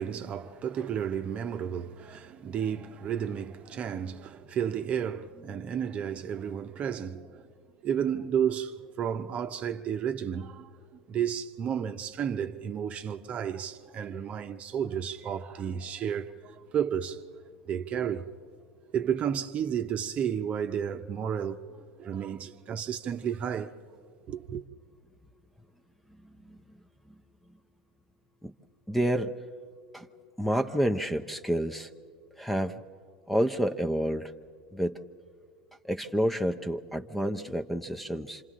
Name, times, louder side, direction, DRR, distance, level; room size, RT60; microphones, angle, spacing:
voice 1, 0.0-7.4 7.8-10.7 11.1-17.2 17.7-18.3 18.9-21.6 22.0-23.7 24.3-24.6, right 8 dB, 35° right, 0.8 m, -32 dB
voice 2, 28.9-29.3 29.9-30.1 30.4-31.9 32.3-32.8 33.3-34.3 34.7-35.0 35.8-38.4, equal, 5° left, 0.6 m, -29 dB
27.5 x 26.5 x 3.8 m
hypercardioid pair, 85°, 4 cm